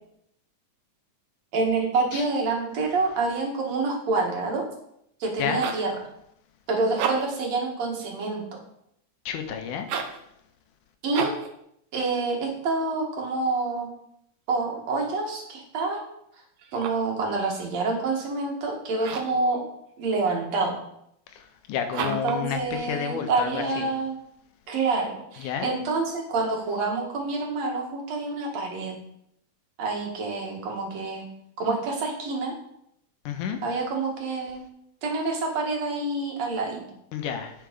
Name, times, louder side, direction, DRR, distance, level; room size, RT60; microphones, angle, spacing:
voice 1, 1.5-4.7 5.2-6.0 6.7-8.6 11.0-11.4 11.9-13.9 14.5-16.0 16.7-19.6 20.0-20.8 22.0-24.2 24.7-29.0 29.8-31.2 31.6-32.5 33.6-34.6 35.0-36.8, right 3 dB, 60° right, 0 dB, 2.8 m, -27 dB
sound 1, 5.3-5.9 6.8-7.5 9.8-10.2 11.1-11.5 16.6-17.1 19.0-19.4 21.9-22.4, right 7 dB, 90° right, 2.6 m, -32 dB
voice 2, 9.3-9.9 21.7-23.9 25.4-25.7 33.3-33.6 37.1-37.5, left 8 dB, 85° left, 6 dB, 2.5 m, -30 dB
10.0 x 5.9 x 5.2 m, 0.75 s
omnidirectional pair, 3.6 m